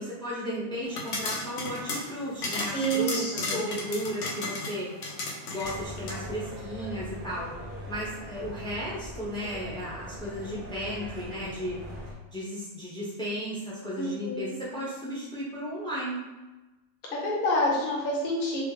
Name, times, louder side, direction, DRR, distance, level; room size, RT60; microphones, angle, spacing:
voice 1, 0.0-5.2 5.4-7.5 7.9-11.8 12.3-16.2, equal, 5° left, -7 dB, 0.5 m, -34 dB
sound 1, 0.9-6.2, left 2 dB, 65° left, 0.9 m, -35 dB
voice 2, 2.7-3.7 14.0-14.5 17.1-18.6, equal, 45° left, -3 dB, 0.9 m, -28 dB
sound 2, 5.6-12.1, equal, 45° right, 0.9 m, -41 dB
4.2 x 2.0 x 3.1 m, 1.1 s
omnidirectional pair, 1.6 m